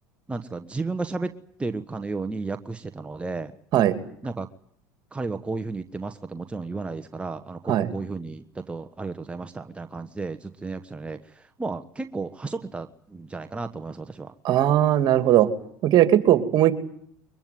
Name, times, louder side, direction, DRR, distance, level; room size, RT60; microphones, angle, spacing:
voice 1, 0.3-1.3 1.6-3.6 4.2-4.5 5.1-14.3, right 3 dB, 10° right, 8 dB, 1.3 m, -33 dB
voice 2, 14.4-15.5 15.8-16.7, right 12 dB, 50° right, 10 dB, 2.7 m, -19 dB
23.0 x 22.0 x 9.5 m, 0.64 s
hypercardioid pair, 85°, 9 cm